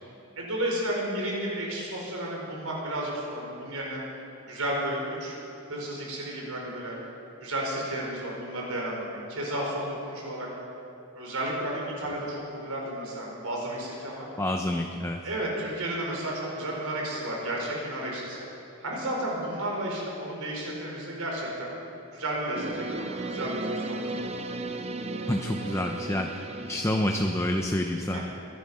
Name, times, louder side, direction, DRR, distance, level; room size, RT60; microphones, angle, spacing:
voice 1, 0.4-4.0 4.4-5.3 5.7-6.9 7.4-10.5 11.1-14.3 15.2-18.4 18.8-21.7 22.1-24.0 28.1-28.2, right 1 dB, 80° right, -2 dB, 4.7 m, -32 dB
voice 2, 14.4-15.2 25.3-28.2, left 1 dB, 15° left, 3 dB, 0.7 m, -28 dB
sound 1, 22.5-27.6, right 2 dB, 30° right, 0.8 m, -35 dB
22.5 x 11.5 x 5.6 m, 2.7 s
head